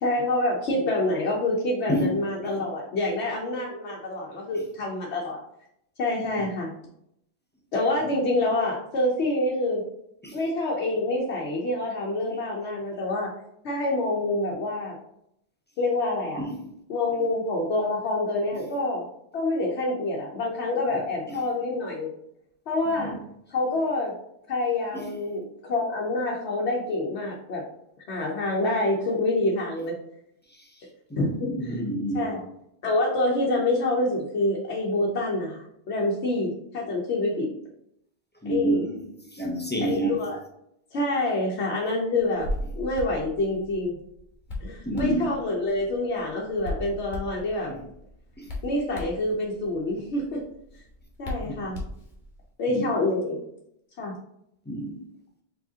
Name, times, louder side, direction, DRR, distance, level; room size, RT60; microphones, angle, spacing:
voice 1, 0.0-5.4 6.0-6.7 7.7-9.8 10.3-13.3 13.6-14.9 15.8-16.5 16.9-19.1 19.3-22.1 22.7-23.2 23.5-24.1 24.5-27.6 28.1-30.0 31.2-31.8 32.1-32.4 32.8-37.5 38.5-38.8 39.8-40.4 40.9-44.0 44.6-47.7 48.6-50.4 51.2-51.8 52.6-53.4 54.0-54.1, left 2 dB, 75° left, 1.1 m, -27 dB
voice 2, 31.1-32.3 38.4-39.0 39.3-40.2 44.9-45.2 47.7-47.8 48.4-48.5 51.4-51.7 52.7-52.8 54.7-55.0, right 1 dB, 10° left, 0.5 m, -28 dB
Hands, 42.2-52.4, left 1 dB, 45° left, 1.3 m, -38 dB
4.7 x 3.4 x 2.8 m
omnidirectional pair, 1.1 m